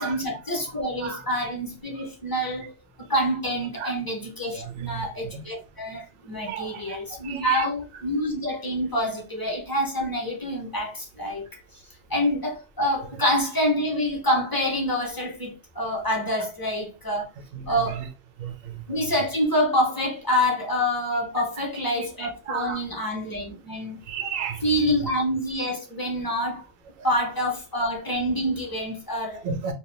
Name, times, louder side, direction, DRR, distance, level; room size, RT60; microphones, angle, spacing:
voice 1, 0.0-2.8 3.1-11.6 12.1-17.3 17.7-18.0 18.9-24.0 24.6-26.6 27.0-29.4, equal, 25° left, 0.5 m, -26 dB
voice 2, 4.5-5.4 6.5-7.0 7.2-7.6 17.5-18.1 18.4-18.8 21.3-21.4 22.2-22.8 24.1-25.0 27.0-27.1 29.4-29.7, right 7 dB, 65° right, 0.7 m, -33 dB
2.2 x 2.2 x 3.1 m
omnidirectional pair, 1.2 m